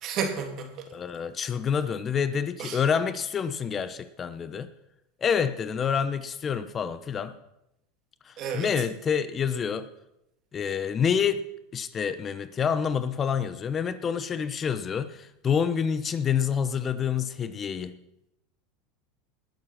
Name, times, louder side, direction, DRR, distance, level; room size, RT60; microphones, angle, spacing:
voice 1, 0.0-0.9 2.6-2.8 8.4-8.7, right 6 dB, 45° right, 3.0 m, -31 dB
voice 2, 0.9-4.7 5.2-7.3 8.3-9.9 10.5-11.5 11.7-18.0, left 7 dB, 30° left, 0.9 m, -27 dB
19.5 x 7.9 x 6.0 m
hypercardioid pair, 105°, 0 cm